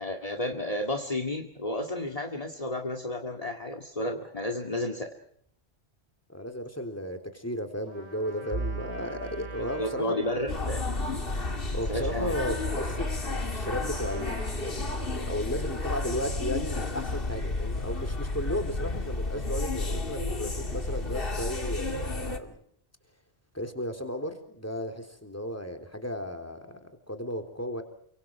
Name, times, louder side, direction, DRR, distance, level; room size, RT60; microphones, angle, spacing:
voice 1, 0.0-5.1 9.8-11.3 11.9-12.5, left 1 dB, 35° left, 6 dB, 2.2 m, -32 dB
voice 2, 6.3-10.4 11.7-22.6 23.5-27.8, equal, 15° left, 5 dB, 3.6 m, -35 dB
Trumpet, 7.8-16.0, right 4 dB, 80° right, 3.5 m, -48 dB
Bowed string instrument, 8.5-13.6, right 3 dB, 50° right, 1.9 m, -41 dB
sound 1, 10.5-22.4, left 2 dB, 60° left, 2.5 m, -32 dB
30.0 x 25.5 x 4.7 m, 0.67 s
omnidirectional pair, 1.1 m